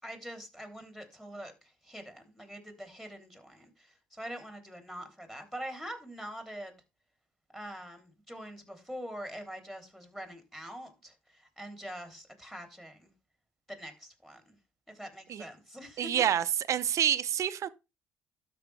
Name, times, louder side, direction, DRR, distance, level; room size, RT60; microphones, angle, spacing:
voice 1, 0.0-1.5 1.8-6.8 7.5-13.1 13.7-14.6 14.9-16.1, equal, 5° left, 3.2 m, -44 dB
voice 2, 16.0-17.7, right 9 dB, 55° right, 0.7 m, -28 dB
12.5 x 5.2 x 3.3 m
hypercardioid pair, 55°, 6 cm